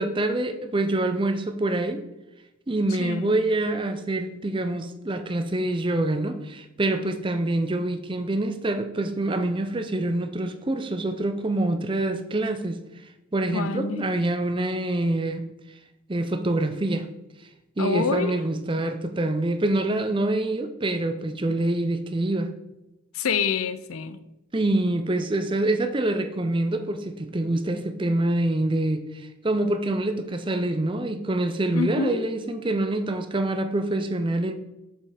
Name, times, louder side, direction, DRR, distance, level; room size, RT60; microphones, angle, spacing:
voice 1, 0.0-2.0 2.7-12.8 13.3-15.5 16.1-17.1 17.8-22.5 24.5-34.5, right 2 dB, 25° right, 8 dB, 0.5 m, -26 dB
voice 2, 3.0-3.3 13.5-14.1 17.8-18.4 23.1-24.2 31.7-32.2, left 6 dB, 85° left, 13 dB, 0.6 m, -27 dB
7.3 x 5.4 x 4.9 m, 0.96 s
head